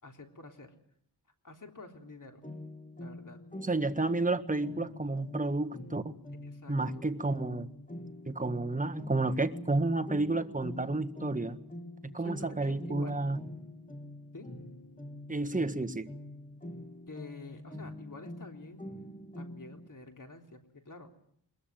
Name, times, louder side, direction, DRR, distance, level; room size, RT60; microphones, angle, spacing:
voice 1, 0.0-0.7 1.4-2.4 3.0-3.4 6.4-7.0 12.1-13.2 14.3-14.5 17.1-18.8 19.3-21.1, left 2 dB, 50° left, 4 dB, 3.7 m, -49 dB
sound 1, 2.4-19.9, left 1 dB, 20° left, 3.3 m, -45 dB
voice 2, 3.6-6.1 6.7-7.7 8.3-11.6 12.0-13.4 15.3-16.1, right 2 dB, 20° right, 8 dB, 1.5 m, -31 dB
22.0 x 21.5 x 9.2 m, 0.68 s
wide cardioid pair, 70°, 41 cm